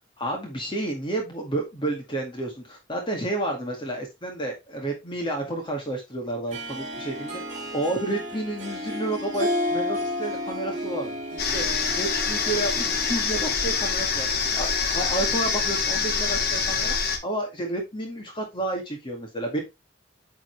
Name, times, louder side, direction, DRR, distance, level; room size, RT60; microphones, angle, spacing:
voice 1, 0.2-14.3 14.5-19.6, right 1 dB, 25° left, 1 dB, 2.1 m, -31 dB
Harp, 6.5-14.2, left 1 dB, 40° right, 2.6 m, -32 dB
sound 1, 11.4-17.2, left 5 dB, 60° left, 1.6 m, -25 dB
9.2 x 4.5 x 3.4 m, 0.22 s
head